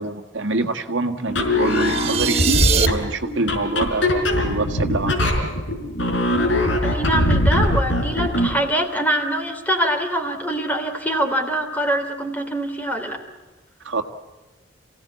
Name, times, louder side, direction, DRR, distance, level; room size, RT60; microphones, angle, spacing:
voice 1, 0.0-5.4 13.8-14.0, right 2 dB, 85° right, 6 dB, 1.9 m, -25 dB
sound 1, 1.3-8.6, left 1 dB, 75° left, 4.6 m, -21 dB
sound 2, 1.7-2.9, right 7 dB, 35° right, 1.4 m, -22 dB
voice 2, 6.8-13.2, right 1 dB, 10° left, 4 dB, 3.2 m, -24 dB
27.5 x 17.0 x 8.3 m, 1.2 s
head